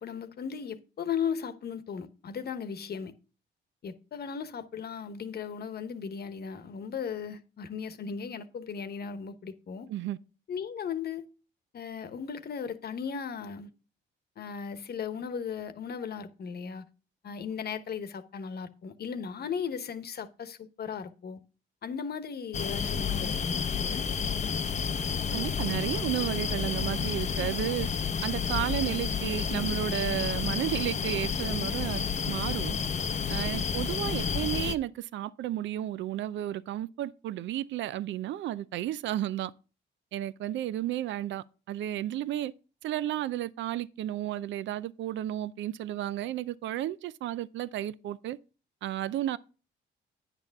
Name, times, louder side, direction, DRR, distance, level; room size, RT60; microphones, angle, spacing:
voice 1, 0.0-3.1 3.8-9.9 10.5-11.3 11.7-13.7 14.4-16.8 17.2-21.4 21.8-24.1, left 7 dB, 55° left, 1.0 m, -36 dB
sound 1, 22.5-34.8, left 6 dB, 35° left, 0.6 m, -30 dB
voice 2, 25.3-27.9 28.2-32.8 33.3-39.5 40.1-42.5 42.8-48.4 48.8-49.4, right 12 dB, 70° right, 0.5 m, -33 dB
9.9 x 6.8 x 3.5 m
cardioid pair, 90°, 20 cm